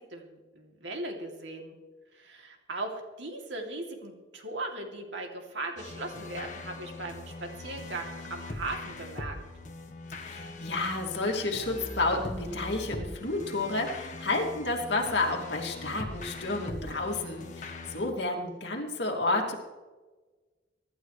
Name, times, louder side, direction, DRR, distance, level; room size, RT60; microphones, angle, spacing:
voice 1, 0.1-1.7 2.1-9.4, right 2 dB, 70° right, 1 dB, 2.9 m, -38 dB
sound 1, 5.8-18.1, left 2 dB, 40° left, 1.5 m, -41 dB
voice 2, 10.2-19.6, left 2 dB, 60° left, 0 dB, 2.7 m, -30 dB
24.5 x 12.0 x 3.3 m, 1.3 s
head